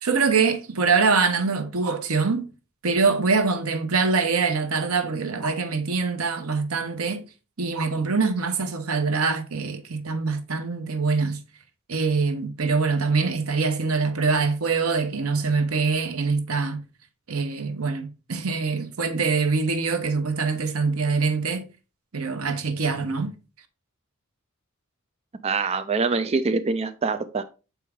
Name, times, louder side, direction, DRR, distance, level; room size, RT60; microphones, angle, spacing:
voice 1, 0.0-2.5 2.8-7.2 7.6-11.4 11.9-16.8 17.3-21.7 22.1-23.3, right 4 dB, 85° right, 1.0 m, -24 dB
voice 2, 25.4-27.4, right 4 dB, 30° right, 0.4 m, -24 dB
7.0 x 4.6 x 3.5 m
head